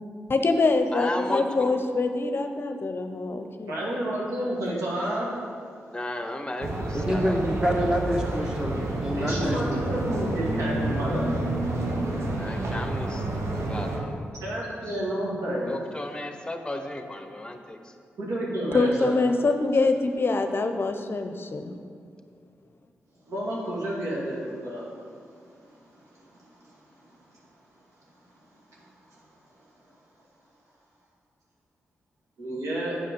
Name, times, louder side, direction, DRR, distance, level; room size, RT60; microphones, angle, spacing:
voice 1, 0.3-3.7 18.7-21.7, left 3 dB, 50° left, 6 dB, 0.6 m, -24 dB
voice 2, 0.9-1.8 5.9-7.4 12.4-13.2 13.5-14.2 14.6-14.7 15.7-17.8, left 1 dB, 15° left, 5 dB, 1.0 m, -34 dB
voice 3, 3.7-5.3 9.2-11.3 14.4-15.7 18.2-19.1 23.3-24.9 32.4-33.0, right 1 dB, 80° right, -6 dB, 2.4 m, -30 dB
sound 1, 6.6-14.0, right 2 dB, 65° right, 1.2 m, -29 dB
voice 4, 6.9-10.1, equal, 15° right, 0 dB, 1.6 m, -27 dB
8.5 x 5.4 x 5.3 m, 2.2 s
supercardioid pair, 45°, 5 cm